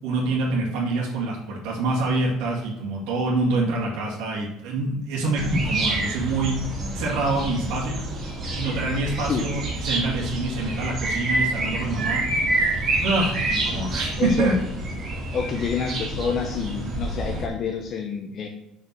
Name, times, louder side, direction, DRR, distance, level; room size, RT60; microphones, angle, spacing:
voice 1, 0.0-6.6 6.9-8.0 8.6-12.2 13.0-14.6, right 2 dB, 90° right, -6 dB, 2.5 m, -26 dB
sound 1, 5.3-17.5, right 2 dB, 30° right, 2.7 m, -27 dB
voice 2, 14.2-14.5 15.3-18.5, left 6 dB, 35° left, 4 dB, 0.9 m, -28 dB
6.3 x 6.2 x 6.9 m, 0.86 s
cardioid pair, 165°, 0 cm